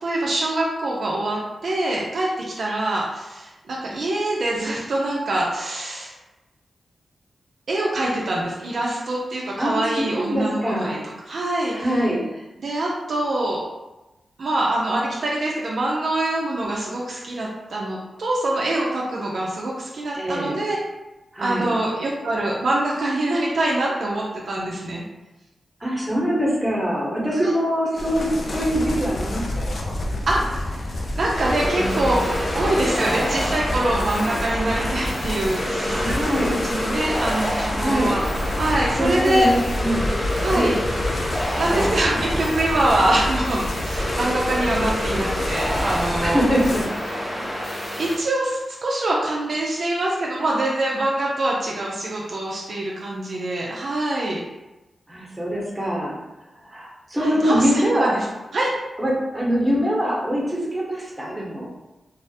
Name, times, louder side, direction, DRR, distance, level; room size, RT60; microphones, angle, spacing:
voice 1, 0.0-2.3 2.6-6.1 7.7-11.0 11.3-12.0 12.6-13.6 14.4-20.8 21.4-25.0 27.4-27.5 30.3-32.2 32.5-36.1 36.5-38.2 38.6-39.5 40.4-40.7 41.6-46.4 47.3-47.4 48.0-54.4 57.2-58.2 58.5-58.7, right 1 dB, 70° right, -3 dB, 0.4 m, -24 dB
voice 2, 9.6-11.0 11.7-12.2 20.1-20.6 21.3-21.7 25.8-29.9 31.6-32.2 32.5-32.8 33.0-33.4 35.9-36.6 37.8-38.2 39.0-40.1 40.5-40.7 41.7-42.2 46.2-46.8 47.3-47.4 55.1-56.1 56.7-58.1 59.0-61.7, equal, 15° right, -4 dB, 0.9 m, -24 dB
sound 1, 28.0-46.9, left 1 dB, 65° left, 0.3 m, -29 dB
sound 2, 31.3-48.1, equal, 40° left, 0.9 m, -28 dB
2.3 x 2.0 x 2.7 m, 1.0 s
cardioid pair, 45°, 0 cm